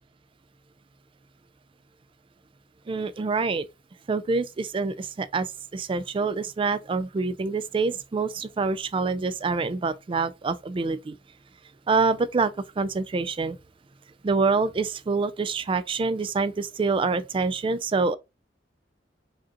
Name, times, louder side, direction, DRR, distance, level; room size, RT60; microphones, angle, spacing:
voice 1, 2.9-3.7 4.1-11.2 11.9-13.6 14.2-18.2, right 4 dB, 30° right, 0.3 m, -26 dB
5.0 x 2.9 x 2.5 m
head